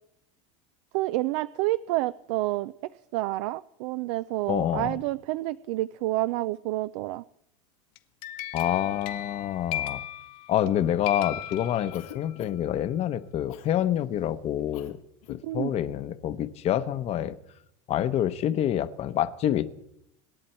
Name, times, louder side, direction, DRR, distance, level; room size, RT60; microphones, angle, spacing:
voice 1, 0.9-2.7 3.1-7.2 15.4-15.7, right 17 dB, 70° right, 15 dB, 0.5 m, -29 dB
voice 2, 4.5-5.0 8.5-10.0 10.5-15.0 15.3-17.4 17.9-19.7, left 11 dB, 40° left, 12 dB, 0.9 m, -27 dB
sound 1, 8.0-10.7 11.0-12.3, left 13 dB, 60° left, 1.0 m, -36 dB
Cough, 11.9-12.8 13.5-13.7 14.7-15.0 15.2-15.5, left 12 dB, 85° left, 1.7 m, -43 dB
26.0 x 11.0 x 4.4 m, 0.79 s
supercardioid pair, 135°, 17 cm